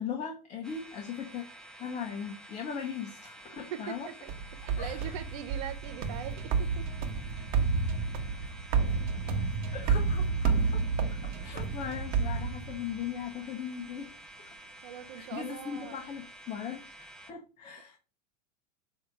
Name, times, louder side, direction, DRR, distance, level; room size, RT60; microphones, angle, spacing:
voice 1, 0.0-1.4 1.8-4.1 4.8-5.1 9.7-14.1 15.1-18.0, left 7 dB, 35° left, 1.3 m, -39 dB
sound 1, 0.6-17.3, right 1 dB, 5° left, 1.2 m, -50 dB
voice 2, 3.7-4.1 4.6-6.8 11.2-11.4 14.8-16.0, right 10 dB, 60° right, 0.8 m, -41 dB
sound 2, 4.3-13.1, right 5 dB, 45° right, 1.2 m, -30 dB
7.2 x 3.1 x 4.8 m
supercardioid pair, 120°, 21 cm